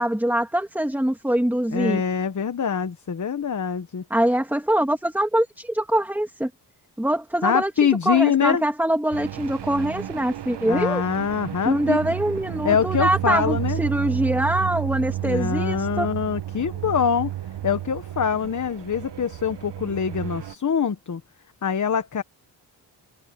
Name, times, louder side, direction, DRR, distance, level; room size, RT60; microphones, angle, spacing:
voice 1, 0.0-2.0 4.1-6.5 7.0-11.0 11.6-16.1, right 1 dB, 5° right, 2.1 m, -23 dB
voice 2, 1.7-4.0 7.4-8.6 10.6-12.0 12.6-13.8 15.2-17.3 17.6-21.2 21.6-22.2, left 7 dB, 45° left, 1.2 m, -24 dB
sound 1, 9.1-20.5, right 13 dB, 70° right, 1.2 m, -31 dB
wide cardioid pair, 105°, 43 cm